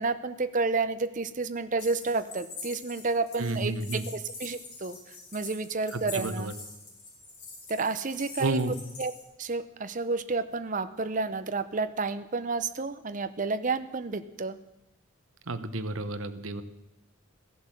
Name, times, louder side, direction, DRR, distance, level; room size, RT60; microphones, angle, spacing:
voice 1, 0.0-6.5 7.7-8.6 9.0-9.1 9.4-14.6, right 3 dB, 35° right, 10 dB, 0.6 m, -30 dB
sound 1, 1.8-9.2, left 3 dB, 75° left, 4.8 m, -45 dB
voice 2, 3.4-4.1 5.9-6.5 8.4-8.7 15.5-16.6, right 2 dB, 65° right, 10 dB, 1.0 m, -31 dB
15.0 x 11.0 x 7.5 m, 0.94 s
head